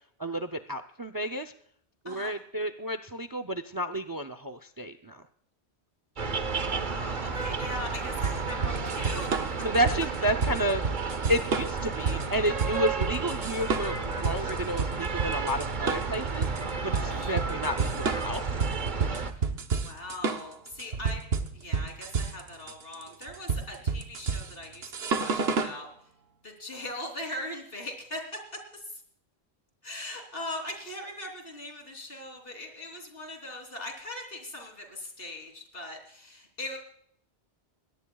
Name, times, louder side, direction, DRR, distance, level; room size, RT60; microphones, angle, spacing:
voice 1, 0.2-1.5 2.0-5.2 9.6-10.8 11.3-16.5 16.8-18.4, right 1 dB, 25° right, 9 dB, 0.5 m, -31 dB
sound 1, 6.2-19.3, right 4 dB, 50° right, 1.2 m, -32 dB
voice 2, 6.6-9.6 17.1-17.4 19.4-21.2 21.5-25.9 26.4-28.2 28.7-29.0 29.8-36.8, left 1 dB, 65° left, 2 dB, 3.7 m, -40 dB
sound 2, 8.2-25.8, right 5 dB, 75° right, 1.3 m, -30 dB
21.5 x 17.5 x 2.3 m, 0.63 s
omnidirectional pair, 1.1 m